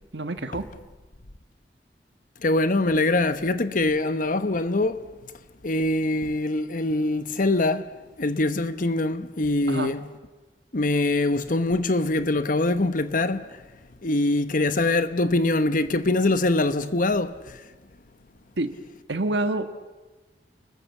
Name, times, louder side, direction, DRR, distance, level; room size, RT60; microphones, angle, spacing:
voice 1, 0.1-0.7 9.7-9.9 18.6-18.7 19.1-19.7, right 2 dB, 80° right, 1.6 m, -27 dB
voice 2, 2.4-5.0 5.6-7.9 8.2-10.0 10.7-13.5 14.0-17.3, left 2 dB, 50° left, 1.1 m, -23 dB
30.0 x 20.5 x 7.1 m
head